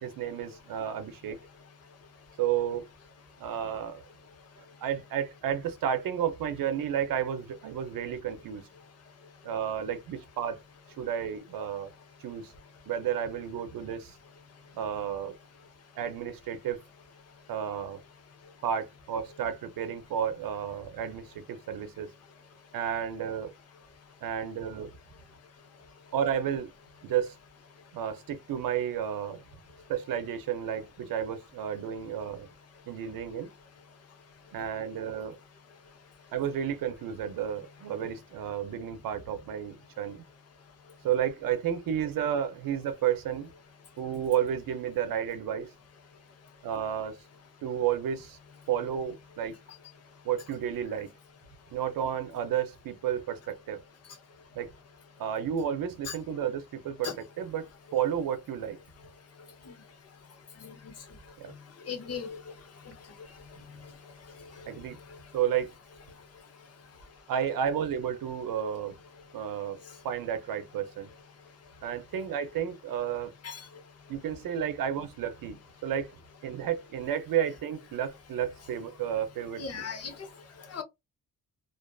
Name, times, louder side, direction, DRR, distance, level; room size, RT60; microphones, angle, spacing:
voice 1, 0.0-1.4 2.4-2.9 3.4-4.0 4.6-8.6 9.4-10.6 11.0-11.9 12.2-12.5 12.9-14.2 14.7-15.3 16.0-16.8 17.5-18.0 18.6-22.1 22.7-23.5 24.2-24.9 26.1-26.7 27.0-27.3 27.9-29.4 29.9-32.5 32.9-33.5 34.5-35.4 36.3-40.2 41.0-43.5 44.0-45.7 46.6-47.2 47.6-48.4 48.7-49.5 50.2-51.1 51.7-53.8 54.5-54.7 55.2-58.8 61.4-61.5 64.7-65.0 65.3-65.7 67.3-69.0 69.3-69.8 70.0-71.1 71.8-73.3 74.1-76.2 76.4-79.8, right 9 dB, 75° right, 0.6 m, -32 dB
voice 2, 61.9-62.4 73.4-73.6 79.6-80.1 80.7-80.8, left 6 dB, 45° left, 0.7 m, -36 dB
2.5 x 2.4 x 2.3 m
cardioid pair, 120°, 34 cm